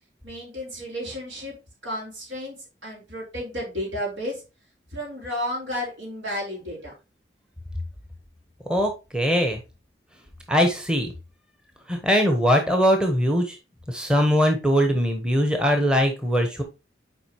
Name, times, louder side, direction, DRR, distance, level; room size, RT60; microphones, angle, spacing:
voice 1, 0.2-1.6 1.8-4.4 4.9-6.9, equal, 80° right, -2 dB, 4.2 m, -32 dB
voice 2, 8.7-9.6 10.5-11.1 11.9-13.6 13.9-16.6, equal, 5° right, 4 dB, 0.9 m, -21 dB
7.8 x 4.8 x 2.9 m, 0.27 s
head